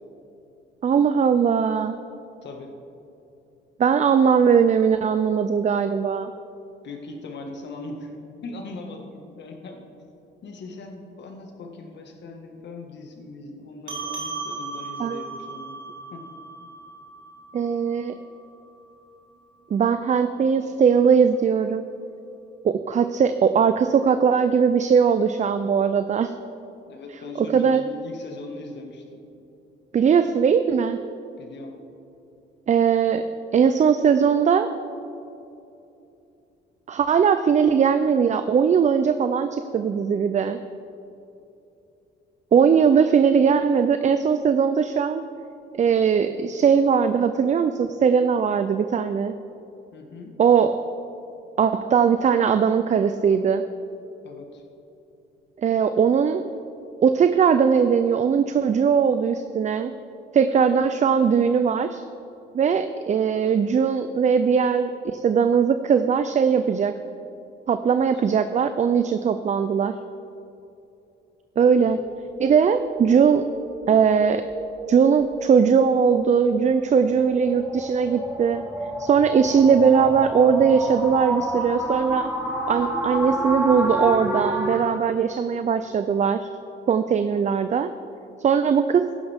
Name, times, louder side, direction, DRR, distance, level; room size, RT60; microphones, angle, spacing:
voice 1, 0.8-2.0 3.8-6.3 15.0-15.2 17.5-18.2 19.7-21.8 22.6-26.4 27.4-27.8 29.9-31.0 32.7-34.7 36.9-40.6 42.5-45.2 45.7-49.4 50.4-50.8 51.6-53.6 55.6-56.4 57.0-59.9 60.3-62.0 62.5-67.0 67.7-70.0 71.6-72.0 72.4-73.5 73.9-74.4 74.9-78.6 79.0-82.3 82.7-86.5 86.9-87.9 88.4-89.1, right 6 dB, 35° right, 10 dB, 0.4 m, -20 dB
voice 2, 2.4-2.7 6.8-9.8 10.4-15.8 16.1-16.2 26.9-29.2 31.4-31.8 49.9-50.3 54.2-54.6 67.9-68.2 71.8-72.0, left 2 dB, 60° left, 2 dB, 1.7 m, -39 dB
sound 1, 13.9-18.7, right 4 dB, 70° right, 2.1 m, -37 dB
sound 2, 71.6-84.8, right 1 dB, 10° right, 2.2 m, -30 dB
15.0 x 11.0 x 3.6 m, 2.8 s
cardioid pair, 90°, 20 cm